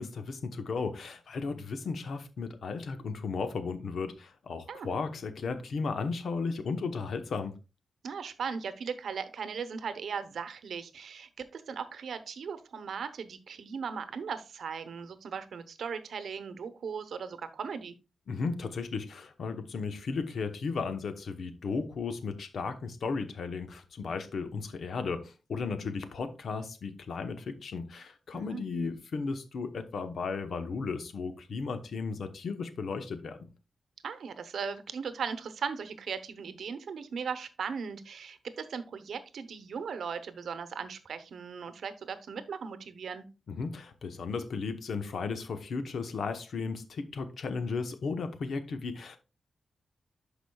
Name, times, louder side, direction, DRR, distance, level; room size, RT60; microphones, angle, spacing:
voice 1, 0.0-7.5 18.3-33.4 43.5-49.2, left 4 dB, 75° left, 0.9 m, -35 dB
voice 2, 8.0-17.9 28.3-28.6 34.0-43.3, right 6 dB, 80° right, 0.8 m, -38 dB
11.5 x 5.0 x 2.3 m
wide cardioid pair, 95°, 0 cm